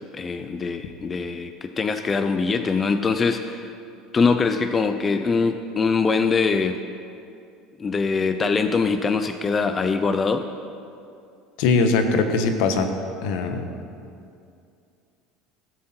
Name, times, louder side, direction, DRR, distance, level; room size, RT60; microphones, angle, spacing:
voice 1, 0.1-3.7 4.1-6.8 7.8-10.5, left 4 dB, 20° left, 8 dB, 0.4 m, -23 dB
voice 2, 11.6-12.9 13.2-13.6, left 4 dB, 75° left, 6 dB, 1.1 m, -21 dB
16.5 x 7.7 x 4.4 m, 2.5 s
cardioid pair, 140°, 0 cm